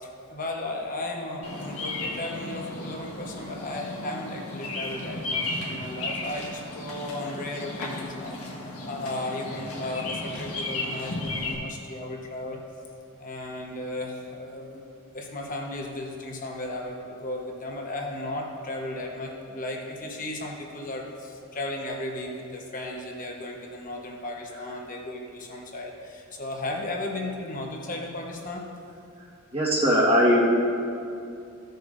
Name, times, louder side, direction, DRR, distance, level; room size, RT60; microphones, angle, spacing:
voice 1, 0.0-8.4 8.9-12.6 13.2-28.7, left 1 dB, 40° left, 0 dB, 1.1 m, -35 dB
Bird vocalization bird call bird song, 1.4-11.5, left 2 dB, 80° left, 1.6 m, -34 dB
voice 2, 29.5-30.5, equal, 25° right, -5 dB, 1.5 m, -20 dB
15.5 x 6.6 x 2.6 m, 2.5 s
head